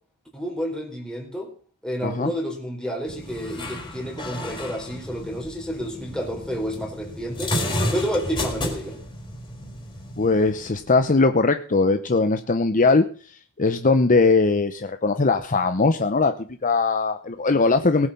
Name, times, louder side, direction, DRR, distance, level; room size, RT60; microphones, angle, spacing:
voice 1, 0.3-1.5 1.8-7.6 7.9-9.0, equal, 5° left, 1 dB, 3.9 m, -30 dB
sound 1, 3.1-11.1, left 1 dB, 20° left, 4.3 m, -32 dB
voice 2, 10.2-16.3 16.6-18.1, left 3 dB, 35° left, 8 dB, 0.8 m, -20 dB
19.0 x 8.5 x 5.4 m, 0.40 s
head